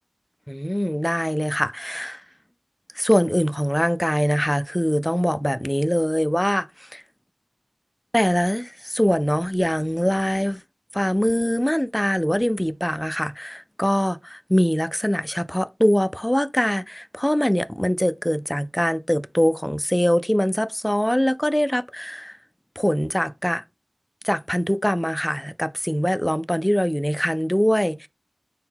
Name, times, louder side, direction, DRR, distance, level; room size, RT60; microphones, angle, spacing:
voice 1, 0.5-2.2 2.9-7.0 8.1-10.6 10.9-22.4 22.8-23.6 24.2-28.1, equal, 10° left, 0.3 m, -23 dB
3.7 x 2.2 x 4.2 m
wide cardioid pair, 60°, 0 cm